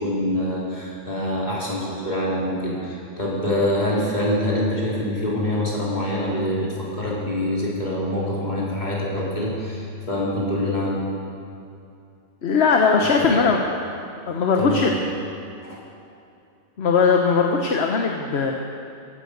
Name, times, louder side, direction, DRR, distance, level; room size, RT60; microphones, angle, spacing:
voice 1, 0.0-11.0 13.0-13.5 14.6-15.1 15.6-15.8, left 1 dB, 40° left, -6 dB, 4.1 m, -25 dB
voice 2, 12.4-13.7 14.3-15.0 16.8-18.5, left 5 dB, 65° left, 2 dB, 1.3 m, -19 dB
15.0 x 12.0 x 8.0 m, 2.6 s
omnidirectional pair, 1.2 m